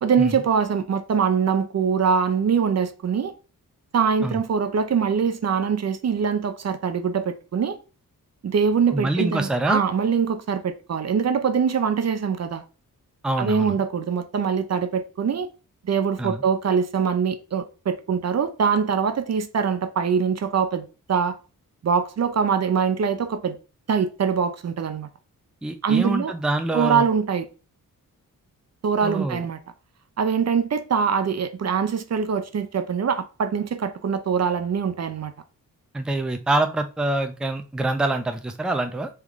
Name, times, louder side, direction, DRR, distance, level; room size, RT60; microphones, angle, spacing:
voice 1, 0.0-3.3 3.9-7.8 8.4-12.6 13.4-15.5 15.8-21.3 21.8-23.6 23.9-25.1 25.8-26.3 26.7-27.5 28.8-29.6 30.2-35.3, right 6 dB, 50° right, 0.5 m, -23 dB
voice 2, 8.9-9.8 13.2-13.8 16.2-16.4 25.6-27.0 29.0-29.4 35.9-39.1, right 2 dB, ahead, 0.5 m, -25 dB
3.5 x 3.2 x 3.5 m
cardioid pair, 80°, 34 cm